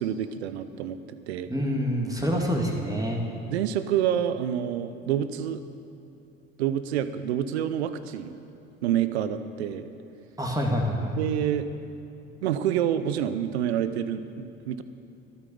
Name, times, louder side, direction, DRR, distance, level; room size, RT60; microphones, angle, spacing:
voice 1, 0.0-1.5 2.3-2.4 3.5-5.6 6.6-8.4 8.8-9.9 11.2-11.7 12.4-14.8, right 10 dB, 80° right, 12 dB, 0.7 m, -28 dB
voice 2, 1.5-3.2 10.4-11.1, equal, 10° right, 0 dB, 2.2 m, -26 dB
13.0 x 9.5 x 7.0 m, 2.6 s
hypercardioid pair, 60°, 32 cm